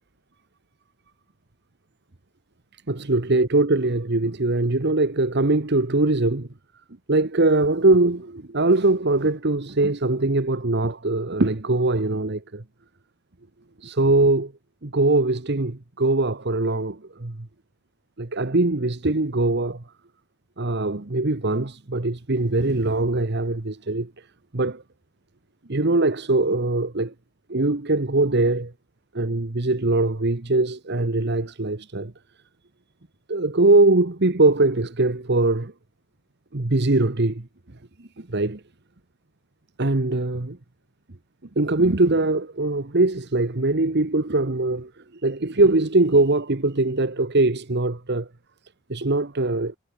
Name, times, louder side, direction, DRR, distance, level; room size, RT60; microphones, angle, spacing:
voice 1, 2.9-6.5 7.1-12.6 13.8-14.5 14.8-17.5 18.2-19.8 20.6-24.1 24.5-24.8 25.7-27.1 27.5-28.7 29.1-32.1 33.3-35.7 36.5-37.5 38.2-38.6 39.8-40.6 41.6-44.9 45.2-48.3 48.9-49.7, right 2 dB, 50° right, 1.3 m, -21 dB
head